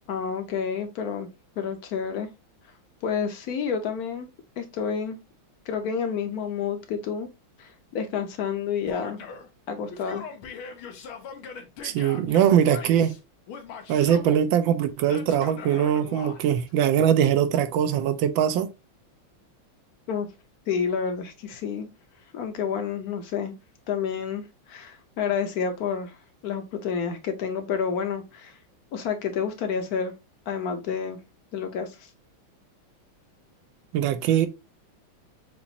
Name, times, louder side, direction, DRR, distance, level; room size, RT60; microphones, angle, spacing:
voice 1, 0.1-1.3 1.6-2.3 3.0-4.3 4.6-5.2 5.7-7.3 7.6-9.2 9.7-10.2 20.1-20.3 20.7-21.9 22.3-23.5 23.9-24.4 24.7-26.2 26.4-28.6 28.9-30.1 30.5-31.2 31.5-32.1, left 6 dB, 60° left, 1.1 m, -29 dB
Male speech man speaking / Yell, 8.9-9.5 9.9-13.2 13.5-14.4 15.1-16.4, left 6 dB, 90° left, 1.8 m, -40 dB
voice 2, 11.8-13.1 13.9-18.7 33.9-34.5, right 9 dB, 75° right, 1.3 m, -22 dB
7.0 x 2.5 x 2.8 m
omnidirectional pair, 2.2 m